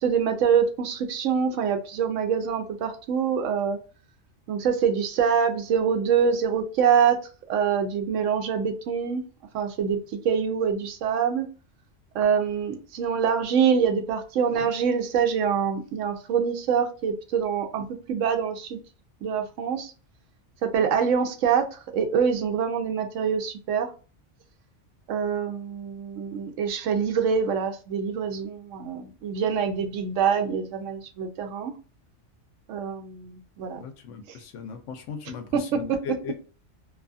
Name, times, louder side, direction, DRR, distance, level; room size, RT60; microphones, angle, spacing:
voice 1, 0.0-3.8 4.5-7.2 7.5-9.2 9.5-10.0 10.2-11.5 12.1-18.8 19.2-19.9 20.6-23.9 25.1-31.7 32.7-33.8, right 7 dB, 90° right, 0.9 m, -25 dB
voice 2, 33.8-36.4, left 6 dB, 85° left, 0.9 m, -37 dB
2.7 x 2.3 x 2.5 m
omnidirectional pair, 1.3 m